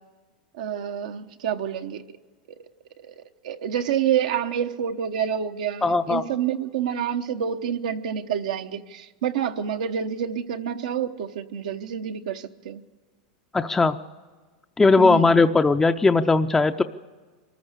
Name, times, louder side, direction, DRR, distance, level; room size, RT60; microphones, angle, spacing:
voice 1, 0.6-2.0 3.0-12.8 15.0-15.4, right 8 dB, 80° right, 6 dB, 1.0 m, -28 dB
voice 2, 5.8-6.2 13.5-13.9 14.8-16.8, left 3 dB, 10° left, 8 dB, 0.5 m, -18 dB
23.0 x 14.0 x 8.2 m, 1.4 s
supercardioid pair, 125°, 4 cm